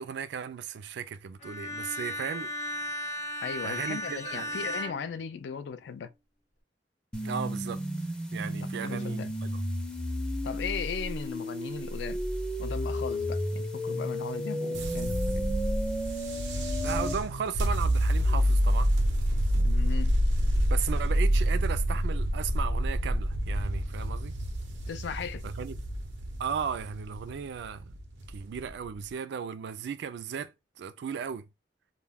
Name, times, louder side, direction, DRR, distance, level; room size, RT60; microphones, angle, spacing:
voice 1, 0.0-2.5 3.6-4.6 7.2-7.8 8.3-9.6 16.8-18.9 20.7-24.4 25.4-25.8 26.4-27.9 28.3-31.5, right 7 dB, 70° right, 0.3 m, -36 dB
Bowed string instrument, 1.4-5.9, equal, 45° left, 0.8 m, -36 dB
voice 2, 3.4-6.1 8.8-9.3 10.4-12.2 12.6-15.6 19.5-20.1 24.9-25.4, left 6 dB, 70° left, 0.3 m, -37 dB
sound 1, 7.1-17.1, equal, 5° left, 0.4 m, -33 dB
sound 2, 14.7-28.9, equal, 90° right, 0.7 m, -27 dB
2.3 x 2.2 x 3.3 m
head